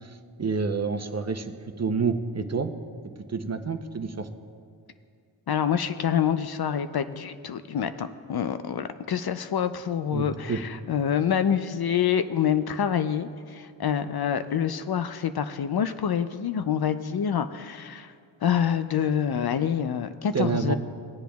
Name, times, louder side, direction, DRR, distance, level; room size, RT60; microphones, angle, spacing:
voice 1, 0.0-2.7 3.3-4.3 10.1-10.6 20.3-20.7, right 5 dB, 35° right, 8 dB, 0.7 m, -28 dB
voice 2, 5.5-18.1 18.4-20.7, left 8 dB, 50° left, 11 dB, 0.5 m, -26 dB
21.0 x 8.2 x 2.3 m, 2.3 s
cardioid pair, 55°, 48 cm